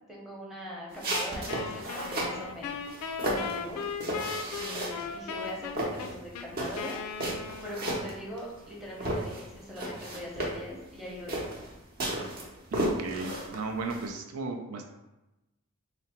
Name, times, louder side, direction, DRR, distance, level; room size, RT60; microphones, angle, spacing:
voice 1, 0.1-3.8 4.4-7.0 7.6-11.6, equal, ahead, -4 dB, 0.6 m, -42 dB
sound 1, 0.9-2.4 2.9-5.1 5.4-8.7 9.0-14.1, right 1 dB, 45° right, 0.7 m, -33 dB
Wind instrument woodwind instrument, 1.5-8.0, left 6 dB, 85° left, 0.3 m, -38 dB
voice 2, 12.7-14.8, right 3 dB, 80° right, 3 dB, 0.4 m, -35 dB
3.1 x 2.0 x 4.1 m, 0.98 s
head